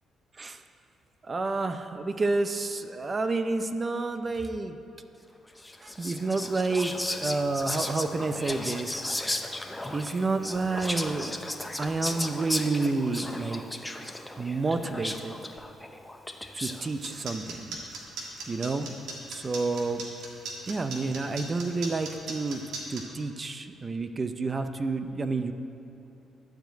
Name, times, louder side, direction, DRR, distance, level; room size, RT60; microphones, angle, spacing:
voice 1, 1.2-4.8 5.8-9.0 9.9-11.3 11.8-13.6 14.4-15.3 16.5-17.7 18.5-19.0 19.3-20.0 20.7-22.6 22.9-25.5, right 3 dB, 30° right, 9 dB, 0.6 m, -29 dB
Whispering, 5.6-16.9, left 1 dB, 10° left, 0.7 m, -35 dB
sound 1, 16.8-23.0, right 4 dB, 85° right, 1.7 m, -38 dB
12.0 x 5.1 x 7.7 m, 3.0 s
cardioid pair, 90°, 0 cm